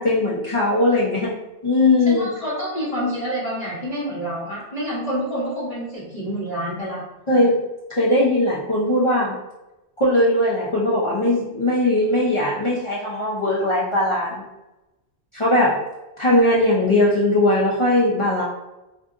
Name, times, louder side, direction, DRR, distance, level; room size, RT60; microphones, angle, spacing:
voice 1, 0.0-1.4 1.6-2.3 7.3-7.6 7.9-9.3 10.0-14.4 15.3-15.8 16.2-18.4, left 1 dB, 50° left, -6 dB, 0.3 m, -19 dB
voice 2, 2.0-7.0, equal, 35° left, -9 dB, 0.9 m, -28 dB
2.6 x 2.4 x 3.6 m, 0.98 s
omnidirectional pair, 1.3 m